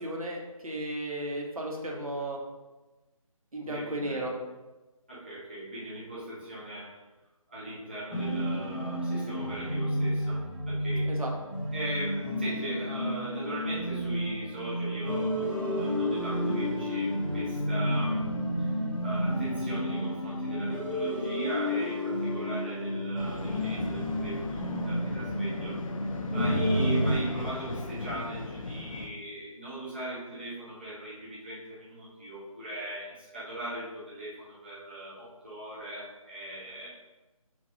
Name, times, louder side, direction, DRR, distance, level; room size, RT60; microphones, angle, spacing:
voice 1, 0.0-2.4 3.5-4.3 11.1-11.3, right 1 dB, 75° right, -1 dB, 1.2 m, -34 dB
voice 2, 3.6-4.2 5.1-7.0 7.5-11.1 11.7-18.2 18.6-25.8 26.3-36.9, right 1 dB, 20° right, -8 dB, 0.5 m, -39 dB
sound 1, 8.1-27.1, equal, ahead, 1.1 m, -31 dB
sound 2, 23.2-29.1, left 3 dB, 65° left, 0.5 m, -38 dB
3.9 x 2.5 x 4.6 m, 1.1 s
figure-of-eight pair, 175°, 18 cm